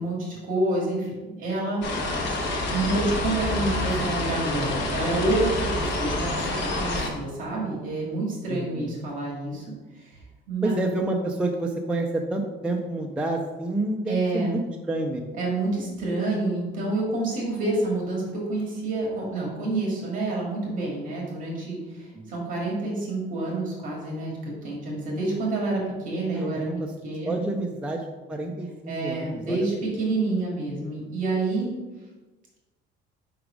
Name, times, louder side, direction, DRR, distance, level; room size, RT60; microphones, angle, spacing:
voice 1, 0.0-1.8 2.7-9.6 9.9-10.2 10.5-10.8 14.1-14.6 15.3-26.7 27.0-27.4 28.9-31.7, right 2 dB, 40° right, -3 dB, 1.9 m, -28 dB
sound 1, 1.8-7.1, left 2 dB, 60° left, 1.1 m, -27 dB
voice 2, 8.5-8.9 10.6-15.2 22.1-22.3 26.4-26.9 27.3-29.7, right 2 dB, 5° right, 2 dB, 0.3 m, -29 dB
5.1 x 4.7 x 4.9 m, 1.2 s
cardioid pair, 175°, 20 cm